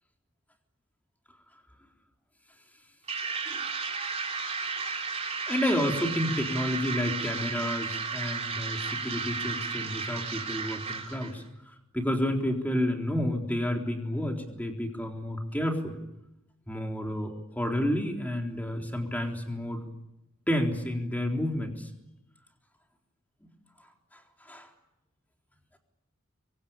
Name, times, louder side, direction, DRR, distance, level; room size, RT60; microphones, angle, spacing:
sound 1, 3.1-11.4, right 5 dB, 30° right, 4.0 m, -33 dB
voice 1, 5.5-16.0 16.7-19.8 20.5-21.9 24.1-24.7, left 1 dB, 10° left, 2 dB, 3.8 m, -30 dB
26.5 x 23.0 x 8.8 m, 0.88 s
head